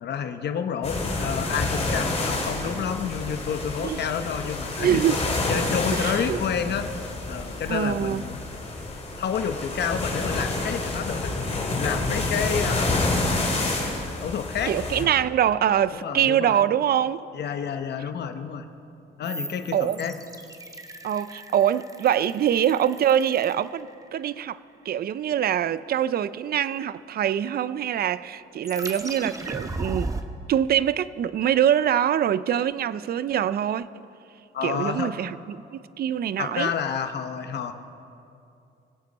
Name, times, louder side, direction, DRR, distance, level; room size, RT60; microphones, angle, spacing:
voice 1, 0.0-5.0 5.5-6.9 7.3-8.4 9.2-12.9 14.1-15.1 16.0-16.6 17.3-18.6 19.2-20.1 34.5-35.1 36.4-37.7, left 7 dB, 60° left, 0.9 m, -29 dB
sound 1, 0.8-15.0, left 2 dB, 30° left, 2.6 m, -28 dB
voice 2, 4.8-5.3 5.9-6.4 7.7-8.2 14.7-17.3 19.7-20.0 21.0-24.6 24.8-30.1 30.5-34.0 34.6-36.7, right 10 dB, 50° right, 0.4 m, -24 dB
sound 2, 19.2-24.3 28.6-30.2, right 2 dB, 15° right, 1.0 m, -36 dB
22.5 x 8.3 x 4.1 m
cardioid pair, 90°, 20 cm